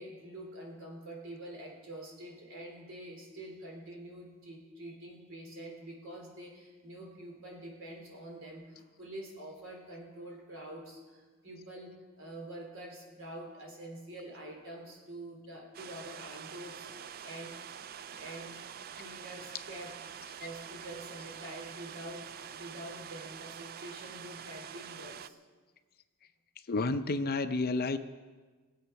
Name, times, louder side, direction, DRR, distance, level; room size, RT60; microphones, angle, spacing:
voice 1, 0.0-17.6 18.1-18.6 19.0-25.4, right 1 dB, 60° right, 0 dB, 3.6 m, -46 dB
sound 1, 15.7-25.3, right 8 dB, 45° right, 0.4 m, -46 dB
voice 2, 26.7-28.0, left 3 dB, 45° left, 10 dB, 0.6 m, -30 dB
20.5 x 7.9 x 5.8 m, 1.4 s
head